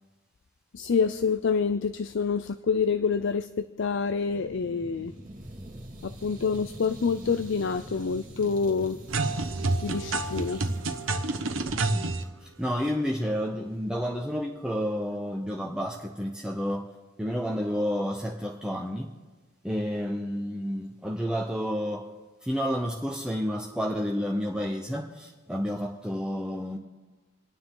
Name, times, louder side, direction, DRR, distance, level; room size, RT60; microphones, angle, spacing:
voice 1, 0.7-5.1 6.0-9.0 9.8-10.6, left 5 dB, 65° left, 11 dB, 0.5 m, -27 dB
sound 1, 4.3-12.3, right 1 dB, 40° right, 2.2 m, -44 dB
sound 2, 9.1-12.2, right 2 dB, 85° right, 1.0 m, -28 dB
voice 2, 11.7-12.1 12.4-16.9 17.2-19.1 19.6-22.1 22.4-26.8, equal, 5° right, 0 dB, 0.9 m, -30 dB
28.0 x 9.6 x 3.8 m, 1.3 s
head